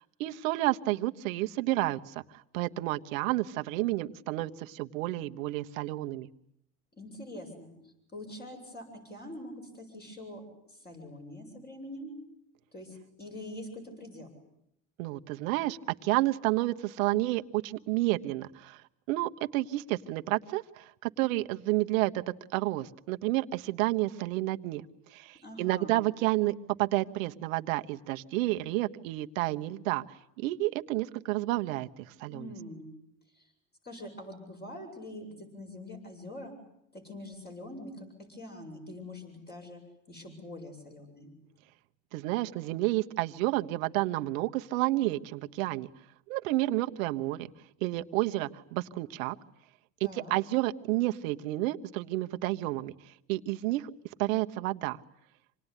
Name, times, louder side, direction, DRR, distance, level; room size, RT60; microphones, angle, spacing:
voice 1, 0.0-2.2 2.5-6.3 15.0-18.8 19.1-24.8 25.1-30.0 30.4-32.5 42.1-45.9 46.3-47.5 47.8-49.3 50.0-52.9 53.3-53.9 54.2-55.0, right 18 dB, 90° right, 7 dB, 1.3 m, -30 dB
voice 2, 6.9-12.1 12.7-14.3 25.4-26.0 32.3-32.9 33.3-33.5 33.8-36.6 36.9-39.8 40.1-41.3 50.0-50.3, left 1 dB, 25° left, 2 dB, 7.9 m, -44 dB
27.0 x 20.0 x 10.0 m, 0.78 s
supercardioid pair, 120°, 39 cm